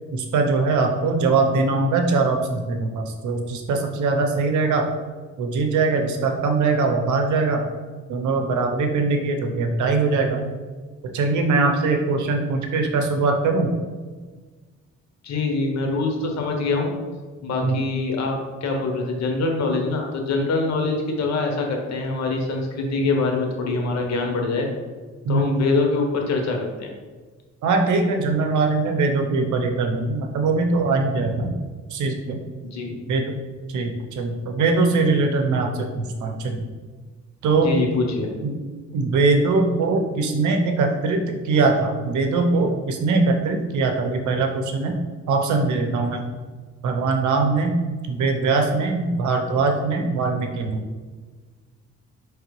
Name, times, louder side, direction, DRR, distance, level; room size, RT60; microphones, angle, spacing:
voice 1, 0.1-4.9 5.4-7.6 8.1-10.4 11.1-13.7 17.6-17.8 25.2-25.6 27.6-31.5 31.9-32.4 33.1-33.4 33.7-36.6 37.4-37.8 38.4-38.5 38.9-45.0 45.3-46.2 46.8-47.8 48.1-50.8, right 3 dB, 75° right, 4 dB, 0.7 m, -21 dB
voice 2, 15.2-16.9 17.4-18.3 18.6-24.7 25.3-26.9 32.6-32.9 37.6-38.3, left 3 dB, 60° left, 2 dB, 1.0 m, -24 dB
4.9 x 3.3 x 3.1 m, 1.4 s
cardioid pair, 90°, 30 cm